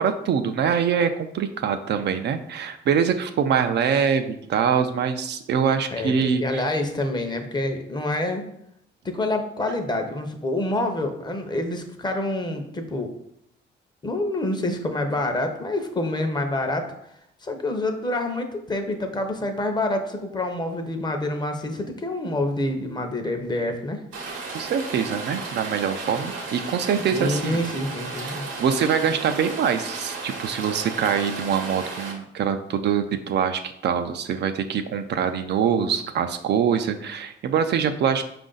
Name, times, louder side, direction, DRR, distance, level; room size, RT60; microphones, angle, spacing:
voice 1, 0.0-6.6 24.5-27.6 28.2-38.2, right 7 dB, 60° right, 7 dB, 0.4 m, -24 dB
voice 2, 6.4-8.4 9.0-13.1 14.0-16.9 17.4-24.0 27.1-28.4, left 1 dB, 20° left, 5 dB, 0.7 m, -27 dB
Rain, 24.1-32.1, right 3 dB, 80° right, 0.9 m, -34 dB
4.9 x 2.5 x 3.8 m, 0.77 s
cardioid pair, 90°, 20 cm